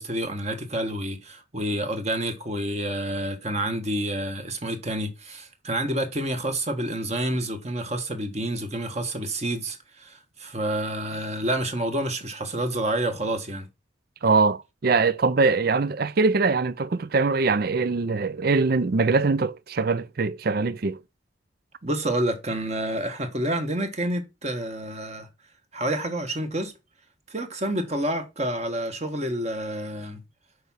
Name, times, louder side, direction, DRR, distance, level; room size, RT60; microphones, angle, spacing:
voice 1, 0.0-13.7 21.8-25.3 25.7-26.7 27.3-30.2, right 1 dB, 35° right, 1.3 m, -28 dB
voice 2, 14.2-21.0, right 4 dB, 50° right, 0.5 m, -22 dB
6.8 x 4.7 x 5.6 m
head